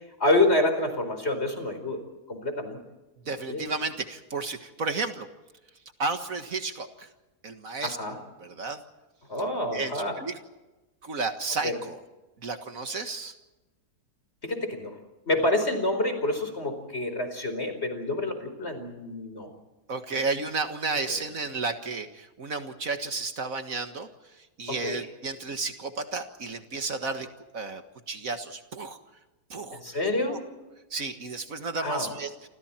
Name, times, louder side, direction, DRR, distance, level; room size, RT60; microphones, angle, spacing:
voice 1, 0.2-2.0 2.3-2.8 3.5-3.6 7.8-8.2 9.3-10.2 11.6-11.7 14.4-15.0 15.3-19.5 24.7-25.1 29.7-30.4 31.8-32.1, left 2 dB, 40° left, 7 dB, 4.9 m, -27 dB
voice 2, 3.3-5.3 6.0-7.1 7.4-8.0 8.4-8.8 9.7-10.4 11.0-12.0 12.4-13.4 19.9-27.3 27.5-29.0 29.5-29.8 30.3-30.4 30.9-32.5, right 4 dB, 60° right, 7 dB, 2.0 m, -32 dB
29.0 x 27.0 x 4.4 m, 1.1 s
omnidirectional pair, 1.7 m